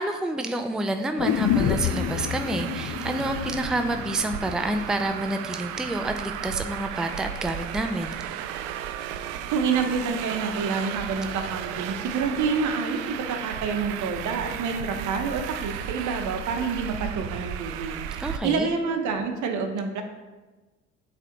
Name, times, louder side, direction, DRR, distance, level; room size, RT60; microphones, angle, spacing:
voice 1, 0.0-8.2 18.2-18.7, right 1 dB, ahead, 6 dB, 0.5 m, -28 dB
sound 1, 1.2-5.2 5.5-5.6, left 8 dB, 50° left, 0.5 m, -28 dB
Traffic noise roadway noise, 1.3-18.4, right 10 dB, 80° right, 0.5 m, -34 dB
voice 2, 9.5-18.0 18.4-20.0, right 5 dB, 60° right, 6 dB, 1.0 m, -28 dB
8.2 x 3.5 x 3.9 m, 1.2 s
hypercardioid pair, 55°, 34 cm